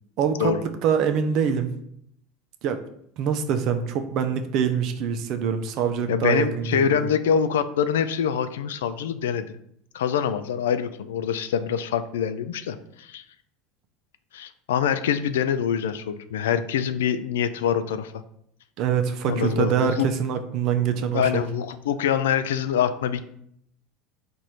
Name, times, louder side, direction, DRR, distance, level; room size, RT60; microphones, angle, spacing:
voice 1, 0.2-0.6 0.8-1.7 2.6-2.8 3.2-7.1 18.8-21.5, right 7 dB, 55° right, 8 dB, 0.5 m, -24 dB
voice 2, 6.1-9.6 9.9-13.2 14.3-18.2 19.2-20.1 20.8-23.2, left 8 dB, 85° left, 11 dB, 0.3 m, -25 dB
4.2 x 2.6 x 4.7 m, 0.71 s
hypercardioid pair, 90°, 0 cm